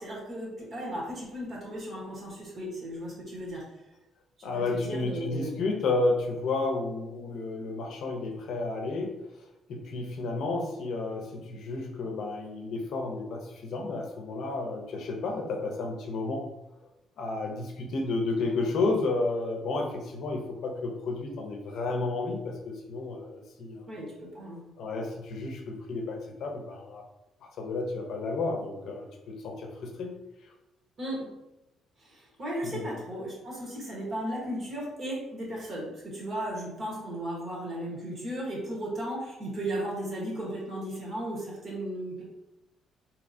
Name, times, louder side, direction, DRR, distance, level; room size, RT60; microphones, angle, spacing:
voice 1, 0.0-3.6 4.4-5.5 23.9-24.6 31.0-31.3 32.0-42.2, right 1 dB, 35° right, -4 dB, 1.2 m, -35 dB
voice 2, 4.4-9.1 9.7-16.5 17.2-23.9 24.8-27.0 27.4-30.2 30.4-30.5 32.6-32.8, left 3 dB, 55° left, 2 dB, 0.7 m, -32 dB
4.5 x 2.9 x 2.6 m, 0.96 s
cardioid pair, 175°, 0 cm